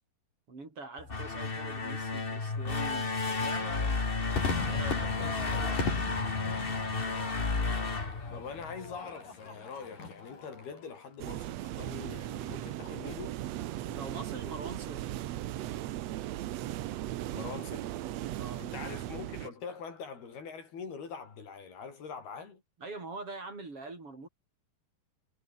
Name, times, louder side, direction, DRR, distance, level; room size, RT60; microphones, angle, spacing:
voice 1, 0.5-3.9 4.7-6.0 13.8-15.1 18.3-18.7 22.8-24.3, right 3 dB, 35° right, 6.6 m, -44 dB
sound 1, 1.0-8.9, left 4 dB, 35° left, 0.9 m, -32 dB
Crowd / Fireworks, 4.4-10.9, left 4 dB, 60° left, 7.9 m, -38 dB
voice 2, 8.3-13.3 17.3-17.9 18.6-22.6, left 5 dB, 85° left, 7.0 m, -43 dB
sound 2, 11.2-19.5, right 14 dB, 90° right, 1.5 m, -37 dB
omnidirectional pair, 4.3 m